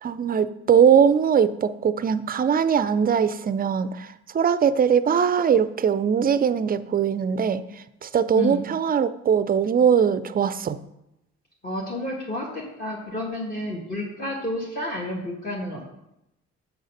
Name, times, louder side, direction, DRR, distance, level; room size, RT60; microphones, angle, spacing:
voice 1, 0.0-10.8, right 7 dB, 30° right, 13 dB, 0.4 m, -21 dB
voice 2, 11.6-15.8, left 1 dB, 30° left, -2 dB, 1.4 m, -30 dB
7.0 x 3.9 x 6.5 m, 0.86 s
cardioid pair, 90°, 30 cm